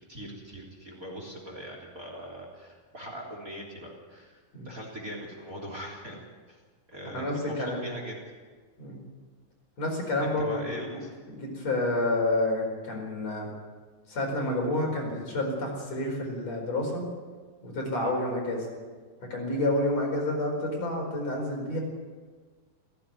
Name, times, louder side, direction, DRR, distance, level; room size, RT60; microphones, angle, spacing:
voice 1, 0.1-4.4 4.6-6.2 6.5-6.6 6.9-8.2 10.2-11.1 18.0-18.1, equal, 25° right, 0 dB, 3.7 m, -41 dB
voice 2, 7.1-7.8 8.8-9.0 9.8-11.0 11.3-13.5 14.1-17.0 17.6-18.7 19.3-21.8, left 1 dB, 50° left, 0 dB, 5.8 m, -29 dB
17.0 x 16.0 x 9.5 m, 1.5 s
omnidirectional pair, 3.8 m